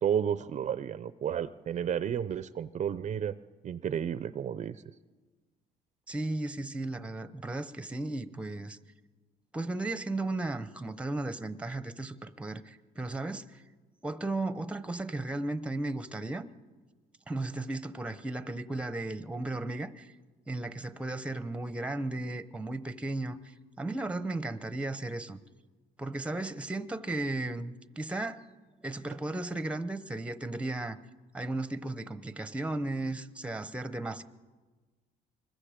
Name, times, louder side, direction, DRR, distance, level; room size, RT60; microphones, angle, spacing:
voice 1, 0.0-3.3 3.6-4.8, right 8 dB, 45° right, 0.6 m, -32 dB
voice 2, 6.1-8.8 9.5-13.6 14.0-16.5 17.3-20.1 20.5-23.4 23.8-25.4 26.0-28.4 28.8-31.0 31.3-34.2, right 2 dB, 5° right, 0.9 m, -35 dB
25.0 x 21.5 x 5.1 m
cardioid pair, 110°, 17 cm